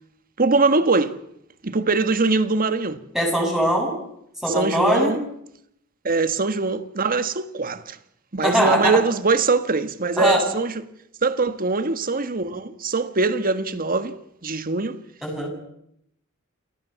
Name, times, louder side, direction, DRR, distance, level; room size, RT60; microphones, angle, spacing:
voice 1, 0.4-1.2 1.6-3.0 4.5-5.2 6.0-8.0 8.3-10.8 11.2-14.1 14.4-15.0, right 3 dB, 45° right, 1.5 m, -22 dB
voice 2, 3.1-3.9 4.4-5.1 8.4-9.0 10.2-10.4 15.2-15.5, equal, ahead, 7.6 m, -21 dB
29.0 x 18.0 x 7.0 m
head